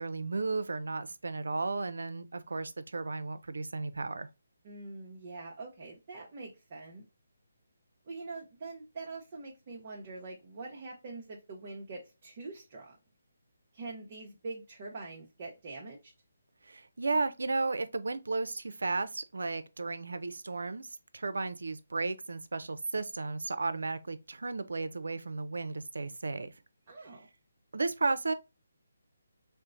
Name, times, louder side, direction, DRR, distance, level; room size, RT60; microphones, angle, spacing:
voice 1, 0.0-4.3 16.6-20.9 21.1-26.5 27.0-27.1 27.7-28.3, right 3 dB, 85° right, 0.5 m, -34 dB
voice 2, 4.6-7.0 8.0-13.0 13.7-16.1 26.9-27.3, right 3 dB, 35° right, 0.7 m, -44 dB
4.3 x 2.0 x 2.5 m
hypercardioid pair, 165°, 0 cm